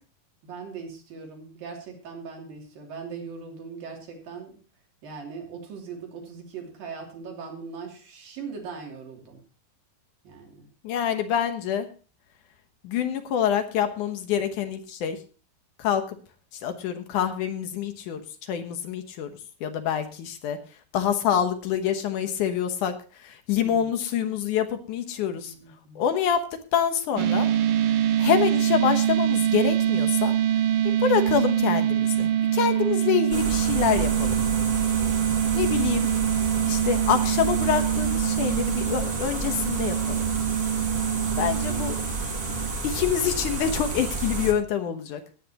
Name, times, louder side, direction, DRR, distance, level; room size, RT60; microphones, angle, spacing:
voice 1, 0.4-4.6 5.0-9.4 10.2-10.7 23.6-23.9 25.2-26.1 41.4-41.8, right 5 dB, 65° right, 0 dB, 4.6 m, -40 dB
voice 2, 10.8-11.9 12.8-15.2 15.8-16.2 16.6-18.2 18.5-19.3 19.6-20.6 20.9-22.9 23.2-25.5 26.0-26.4 26.7-27.5 28.2-30.4 30.8-34.4 35.5-36.1 36.7-40.2 41.4-42.0 42.8-45.2, left 8 dB, 65° left, 7 dB, 2.3 m, -26 dB
sound 1, 27.2-42.7, right 10 dB, 85° right, 2.8 m, -24 dB
sound 2, 33.3-44.5, right 3 dB, 35° right, 1.7 m, -31 dB
18.5 x 9.3 x 2.9 m, 0.36 s
omnidirectional pair, 4.4 m